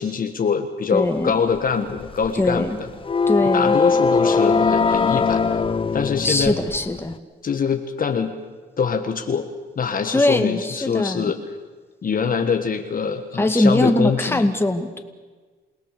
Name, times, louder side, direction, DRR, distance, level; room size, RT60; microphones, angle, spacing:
voice 1, 0.0-2.9 3.5-5.6 5.9-6.6 7.4-8.3 8.8-9.5 9.8-11.4 12.0-14.4, left 6 dB, 45° left, 6 dB, 1.6 m, -24 dB
voice 2, 0.9-1.3 2.4-2.8 3.3-3.8 6.2-7.1 10.1-11.3 13.4-15.0, left 1 dB, 10° left, 6 dB, 2.2 m, -21 dB
sound 1, 1.5-7.1, left 4 dB, 25° left, 0.7 m, -21 dB
28.5 x 18.0 x 6.8 m, 1.4 s
cardioid pair, 90°, 20 cm